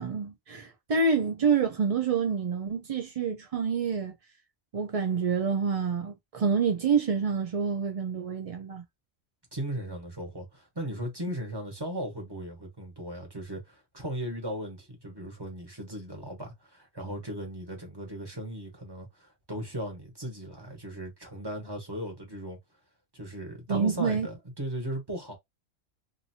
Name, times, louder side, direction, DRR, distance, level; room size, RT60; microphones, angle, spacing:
voice 1, 0.0-4.1 4.7-8.8 23.7-24.3, right 5 dB, 65° right, 0.3 m, -27 dB
voice 2, 9.5-22.6 23.1-25.4, right 1 dB, 20° right, 1.2 m, -37 dB
2.7 x 2.6 x 2.7 m
omnidirectional pair, 1.4 m